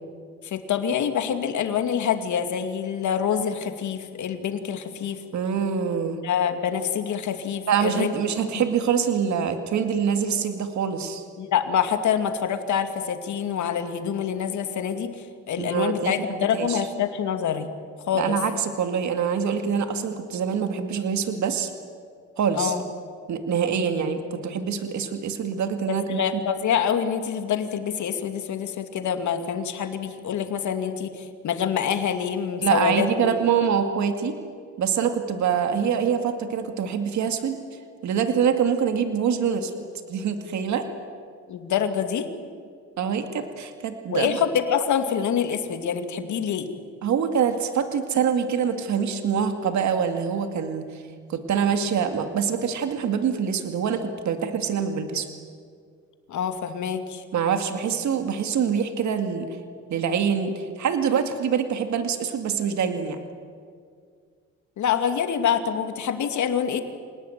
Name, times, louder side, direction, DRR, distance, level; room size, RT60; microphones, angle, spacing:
voice 1, 0.4-5.2 6.2-8.1 8.5-8.6 11.4-17.7 18.1-18.4 22.5-22.8 26.1-33.4 41.5-42.3 44.1-46.7 56.3-57.2 64.8-66.8, left 8 dB, 70° left, 7 dB, 2.5 m, -26 dB
voice 2, 5.3-6.2 7.7-11.2 15.6-16.1 16.6-16.8 18.1-21.7 22.4-22.7 23.3-26.2 32.6-34.3 34.8-37.6 38.0-39.7 40.1-40.9 43.0-44.4 47.0-51.0 51.3-55.3 57.3-59.5 59.9-63.2, right 7 dB, 70° right, 7 dB, 2.3 m, -25 dB
27.5 x 19.0 x 9.3 m, 2.1 s
cardioid pair, 90°, 30 cm